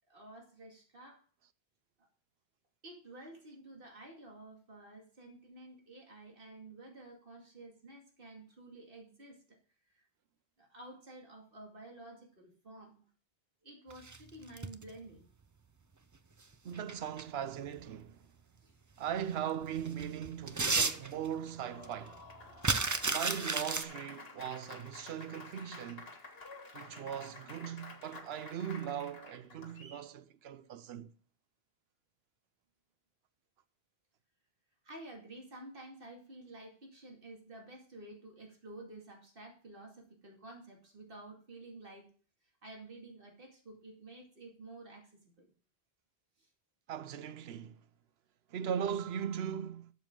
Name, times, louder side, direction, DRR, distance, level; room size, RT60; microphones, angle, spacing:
voice 1, 0.1-1.2 2.8-9.6 9.9-10.0 10.6-13.0 13.6-15.3 18.6-18.7 34.8-42.1 42.6-45.5 46.4-46.5, right 2 dB, 60° right, 2.6 m, -51 dB
sound 1, 13.9-14.9 16.5-17.2 17.8-17.9 19.1-19.2 19.6-21.5 21.8-21.9 22.1-23.8, right 3 dB, 25° right, 0.4 m, -32 dB
voice 2, 16.6-18.2 19.0-22.2 23.1-26.1 26.7-31.1 46.9-47.8 48.5-49.9, right 9 dB, 80° right, 0.9 m, -39 dB
Applause, 21.3-30.1, left 3 dB, 70° left, 1.8 m, -51 dB
12.0 x 7.3 x 3.7 m
omnidirectional pair, 1.0 m